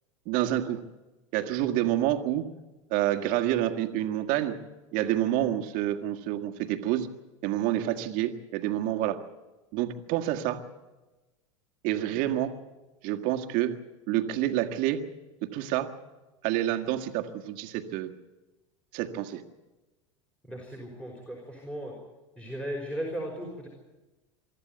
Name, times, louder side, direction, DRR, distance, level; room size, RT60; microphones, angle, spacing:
voice 1, 0.3-0.8 1.3-2.5 2.9-4.6 4.9-7.1 7.4-9.2 9.7-10.6 11.8-12.5 13.0-13.8 14.1-15.0 15.4-15.9 16.4-18.1 18.9-19.4, right 13 dB, 55° right, 7 dB, 1.8 m, -28 dB
voice 2, 20.4-21.9 22.4-23.7, equal, 5° left, -2 dB, 5.5 m, -36 dB
24.5 x 13.5 x 9.3 m, 1.1 s
hypercardioid pair, 95°, 16 cm